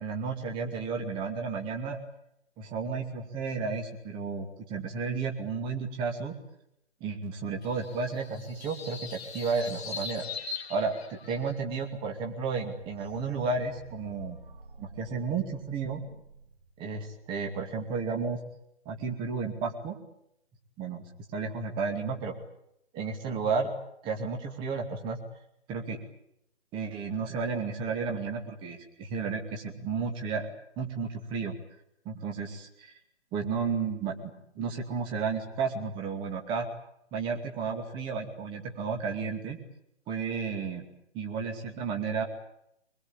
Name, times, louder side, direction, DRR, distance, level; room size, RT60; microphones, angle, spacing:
voice 1, 0.0-2.0 2.6-6.3 7.0-10.2 10.7-14.4 14.8-16.0 16.8-18.4 18.9-20.0 20.8-21.0 21.3-22.3 22.9-23.7 24.0-25.2 25.7-26.0 26.7-30.5 30.8-31.5 32.0-32.9 33.3-36.7 37.1-39.6 40.1-40.9 41.1-42.2, right 5 dB, 15° right, 4 dB, 2.4 m, -32 dB
sound 1, 7.6-11.6, left 5 dB, 65° left, 2.3 m, -41 dB
sound 2, 12.8-17.7, right 4 dB, 50° right, 5.0 m, -50 dB
24.5 x 21.0 x 8.9 m, 0.78 s
figure-of-eight pair, 150°, 34 cm